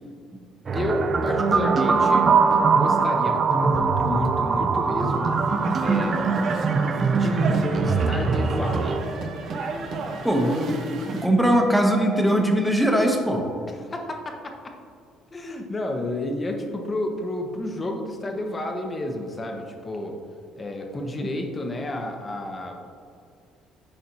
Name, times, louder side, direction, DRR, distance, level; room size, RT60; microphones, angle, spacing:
voice 1, 0.7-2.2 2.7-5.3 5.7-6.3 7.1-9.0 13.7-14.6 15.3-20.1 20.6-22.8, left 1 dB, 25° left, 3 dB, 0.9 m, -30 dB
sound 1, 0.7-9.0, right 4 dB, 35° right, 0.4 m, -22 dB
sound 2, 4.9-11.3, right 3 dB, 55° right, 0.8 m, -33 dB
voice 2, 10.2-13.4, equal, ahead, 1 dB, 0.9 m, -21 dB
10.0 x 4.1 x 2.9 m, 2.4 s
cardioid pair, 110°, 0 cm